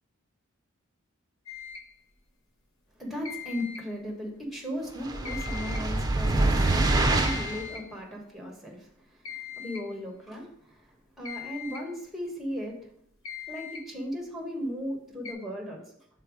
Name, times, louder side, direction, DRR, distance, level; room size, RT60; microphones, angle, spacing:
sound 1, 1.5-1.9 3.2-3.9 5.2-5.9 7.2-7.9 9.2-9.9 11.2-11.9 13.2-13.9 15.2-15.3, left 8 dB, 90° left, 1.1 m, -41 dB
voice 1, 3.0-12.9 13.5-15.8, equal, ahead, 0 dB, 1.3 m, -37 dB
sound 2, 5.0-7.6, right 2 dB, 20° right, 0.6 m, -25 dB
5.7 x 3.9 x 4.9 m, 0.68 s
head